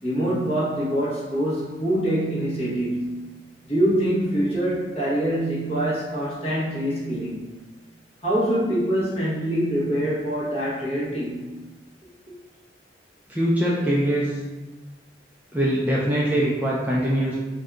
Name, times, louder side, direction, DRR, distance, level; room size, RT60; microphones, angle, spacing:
voice 1, 0.0-3.3 3.6-7.4 8.2-11.5, right 1 dB, 35° left, -8 dB, 1.0 m, -24 dB
voice 2, 13.3-14.4 15.5-17.4, right 1 dB, 10° right, -6 dB, 0.3 m, -22 dB
2.6 x 2.2 x 3.6 m, 1.2 s
head